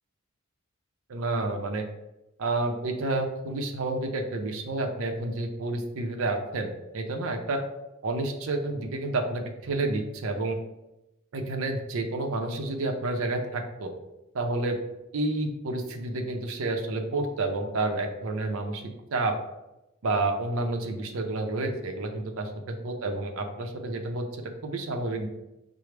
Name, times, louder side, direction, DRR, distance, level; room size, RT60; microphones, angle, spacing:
voice 1, 1.1-1.8 2.4-6.7 6.9-7.6 8.0-10.6 11.3-13.9 14.3-14.8 15.1-19.3 20.0-24.2 24.6-25.3, right 2 dB, 70° right, 4 dB, 0.5 m, -29 dB
5.8 x 2.0 x 3.2 m, 0.93 s
head